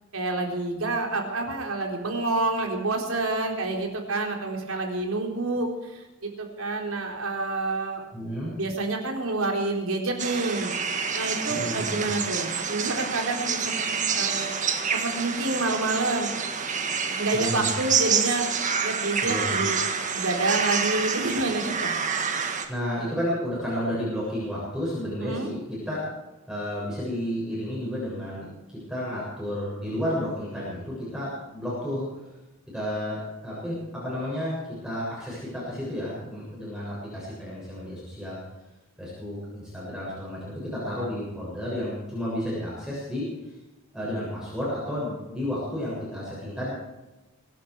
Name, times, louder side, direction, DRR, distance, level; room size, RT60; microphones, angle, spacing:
voice 1, 0.1-8.0 8.6-10.7 11.1-14.5 14.9-16.3 17.1-18.5 18.8-19.8 20.1-21.9 25.2-25.5, right 2 dB, 75° right, 2 dB, 3.9 m, -28 dB
voice 2, 8.1-8.5 11.5-12.0 17.3-17.7 19.2-19.5 22.7-26.1 26.5-32.1 32.7-38.4 39.0-43.5 43.9-46.7, equal, 5° right, -7 dB, 7.1 m, -32 dB
sound 1, 10.2-22.7, right 6 dB, 35° right, 1.7 m, -28 dB
23.5 x 12.0 x 4.8 m, 1.0 s
head